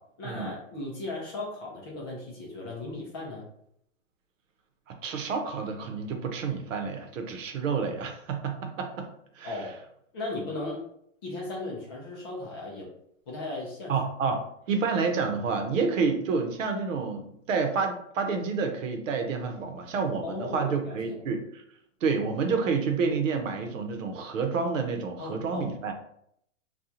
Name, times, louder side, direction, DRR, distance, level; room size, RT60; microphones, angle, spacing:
voice 1, 0.2-3.5 9.4-9.8 10.1-10.8 11.2-12.9 13.3-14.0 20.2-21.2 25.2-25.7, left 2 dB, 20° left, -4 dB, 0.4 m, -36 dB
voice 2, 4.9-9.1 9.4-9.6 13.9-14.4 14.7-21.6 22.0-25.9, right 5 dB, 80° right, 4 dB, 0.8 m, -29 dB
2.8 x 2.3 x 3.7 m, 0.71 s
hypercardioid pair, 155°, 38 cm